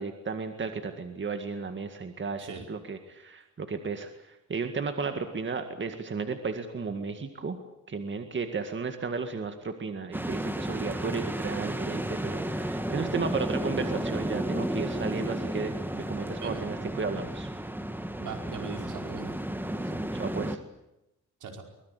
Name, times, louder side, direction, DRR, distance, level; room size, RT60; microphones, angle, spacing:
voice 1, 0.0-7.6 7.9-17.5 19.8-20.6, right 4 dB, 40° right, 7 dB, 2.0 m, -34 dB
sound 1, 10.1-20.6, right 1 dB, 5° right, 1.7 m, -33 dB
voice 2, 18.2-19.3 21.4-21.6, right 5 dB, 80° right, 3 dB, 5.2 m, -40 dB
24.0 x 21.0 x 8.3 m, 0.90 s
cardioid pair, 120°, 31 cm